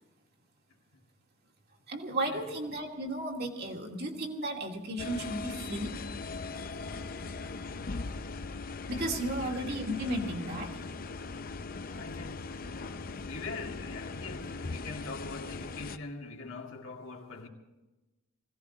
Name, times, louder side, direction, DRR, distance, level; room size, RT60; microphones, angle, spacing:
voice 1, 1.9-5.9 8.9-10.8, right 1 dB, 45° right, 2.5 m, -34 dB
sound 1, 5.0-16.0, left 3 dB, 45° left, 0.6 m, -39 dB
voice 2, 9.3-9.7 11.9-12.6 13.2-17.5, left 3 dB, 65° left, 2.4 m, -43 dB
21.0 x 17.0 x 3.9 m
head